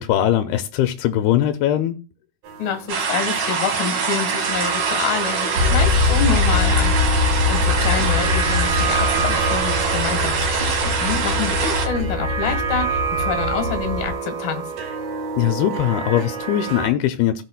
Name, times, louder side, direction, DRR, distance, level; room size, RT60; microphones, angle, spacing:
voice 1, 0.0-2.0 15.4-17.4, left 12 dB, 90° left, 2.6 m, -20 dB
sound 1, 2.4-16.9, right 6 dB, 80° right, 3.6 m, -28 dB
voice 2, 2.6-14.6, left 7 dB, 70° left, 3.1 m, -27 dB
sound 2, 2.9-11.9, right 5 dB, 65° right, 3.7 m, -24 dB
sound 3, 5.6-14.1, left 4 dB, 45° right, 1.2 m, -23 dB
16.0 x 7.1 x 2.2 m
omnidirectional pair, 4.4 m